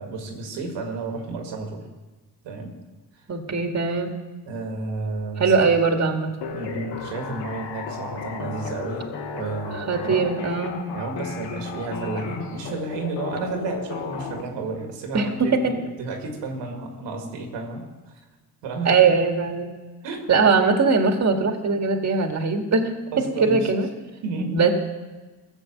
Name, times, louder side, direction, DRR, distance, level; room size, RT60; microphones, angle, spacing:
voice 1, 0.0-1.9 2.4-2.7 4.5-5.7 6.5-9.1 9.3-10.2 10.9-17.8 18.6-19.0 20.0-20.4 23.1-23.7 24.2-24.5, right 3 dB, 85° right, 3 dB, 2.0 m, -32 dB
voice 2, 3.3-4.1 5.4-6.3 9.7-10.8 15.1-15.7 18.9-19.7 20.3-22.9 23.4-23.9 24.5-24.7, right 4 dB, 40° right, 4 dB, 2.0 m, -20 dB
sound 1, 6.4-14.4, left 5 dB, 85° left, 1.5 m, -34 dB
14.5 x 6.9 x 7.5 m, 1.2 s
supercardioid pair, 60°, 42 cm